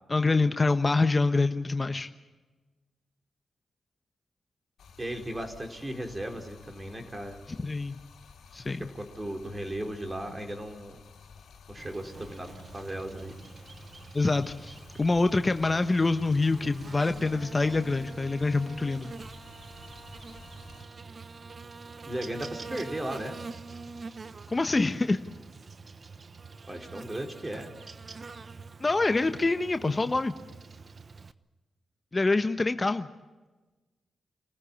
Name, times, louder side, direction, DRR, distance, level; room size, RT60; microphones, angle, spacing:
voice 1, 0.1-2.1 7.6-8.0 8.5-8.8 14.1-19.1 24.5-25.2 28.8-30.3 32.1-33.1, left 3 dB, 35° left, 9 dB, 1.1 m, -26 dB
Stream, 4.8-20.8, left 6 dB, 75° left, 2.6 m, -53 dB
voice 2, 5.0-7.4 8.7-11.0 11.7-13.3 22.1-23.4 26.7-27.7, right 1 dB, 25° right, 3 dB, 4.3 m, -36 dB
Buzz, 11.8-31.3, right 4 dB, 50° right, 1.0 m, -45 dB
26.5 x 15.0 x 8.7 m, 1.2 s
supercardioid pair, 40°, 0 cm